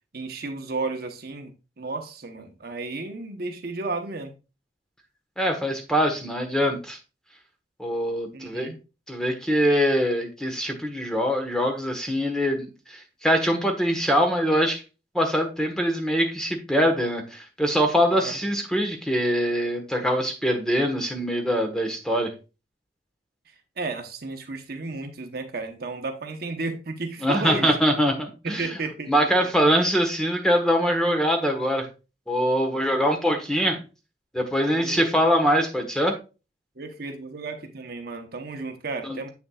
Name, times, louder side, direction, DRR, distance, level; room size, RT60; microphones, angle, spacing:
voice 1, 0.1-4.3 8.3-8.8 18.2-18.3 23.8-27.7 28.4-29.1 34.7-35.0 36.8-39.3, right 3 dB, 55° right, 0.9 m, -33 dB
voice 2, 5.4-7.0 7.8-8.7 9.1-14.8 15.1-22.3 27.2-28.8 29.1-31.9 32.3-33.8 34.3-36.1 39.0-39.3, equal, 5° left, 1.2 m, -23 dB
7.8 x 7.0 x 2.4 m
head